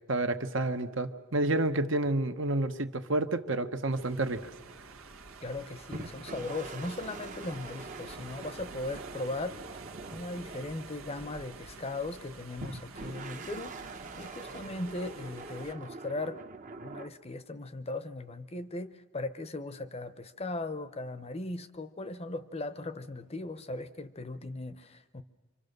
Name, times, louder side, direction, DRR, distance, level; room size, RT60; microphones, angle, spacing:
voice 1, 0.1-4.4, right 2 dB, 60° right, 8 dB, 1.2 m, -29 dB
sound 1, 3.9-15.7, right 4 dB, 90° right, 1.6 m, -49 dB
voice 2, 5.4-9.8 10.1-16.4 16.8-25.2, left 2 dB, 30° left, 12 dB, 0.9 m, -38 dB
sound 2, 5.9-11.8 12.6-17.1, right 3 dB, 40° right, 1.0 m, -44 dB
26.5 x 25.5 x 6.7 m, 1.4 s
head